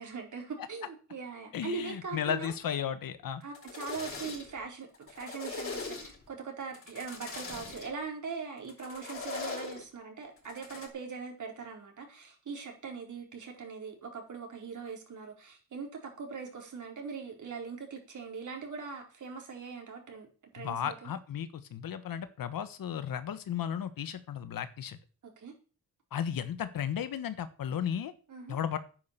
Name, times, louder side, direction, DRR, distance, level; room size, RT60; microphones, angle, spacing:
voice 1, 0.0-2.5 3.4-20.3 20.5-21.1 25.2-25.5 28.3-28.6, right 5 dB, 60° right, 1 dB, 4.6 m, -41 dB
voice 2, 1.5-3.4 20.6-25.0 26.1-28.1 28.5-28.8, left 9 dB, 80° left, 12 dB, 1.4 m, -34 dB
sound 1, 3.4-4.6 4.9-6.3 6.7-7.9 8.7-9.8 10.4-10.9, left 4 dB, 40° left, 4.4 m, -40 dB
10.5 x 9.6 x 6.9 m, 0.37 s
wide cardioid pair, 130°, 34 cm